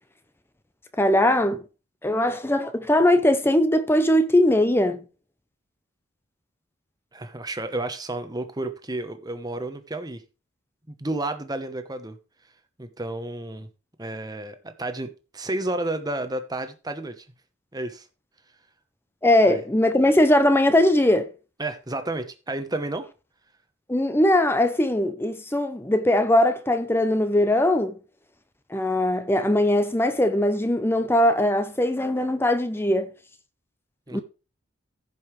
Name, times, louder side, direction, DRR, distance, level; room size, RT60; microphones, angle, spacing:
voice 1, 1.0-1.6 2.0-5.0 19.2-21.3 23.9-28.0 28.7-33.1 34.1-34.2, left 1 dB, 10° left, 0.6 m, -20 dB
voice 2, 7.1-10.2 10.9-12.2 12.8-13.7 14.0-15.1 15.3-17.3 17.7-18.1 19.5-19.6 21.6-23.1 34.1-34.2, right 2 dB, 20° right, 1.0 m, -31 dB
15.5 x 5.4 x 3.2 m
head